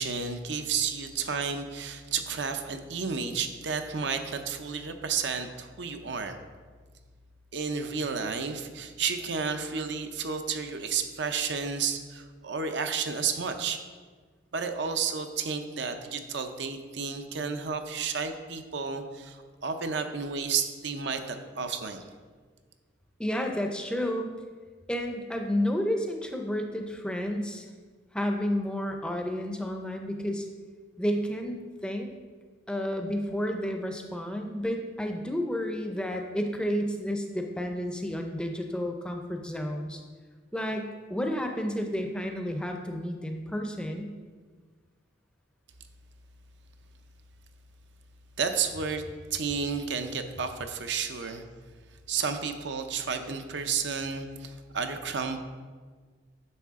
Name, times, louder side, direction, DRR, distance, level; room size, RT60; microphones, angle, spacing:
voice 1, 0.0-6.4 7.5-13.8 14.5-22.1 48.4-51.4 52.1-55.4, right 6 dB, 65° right, 7 dB, 0.6 m, -32 dB
voice 2, 23.2-24.3 24.9-27.7 28.1-30.5 31.0-32.1 32.7-40.0 40.5-44.1, equal, 5° left, 3 dB, 0.6 m, -31 dB
9.8 x 6.5 x 3.6 m, 1.5 s
head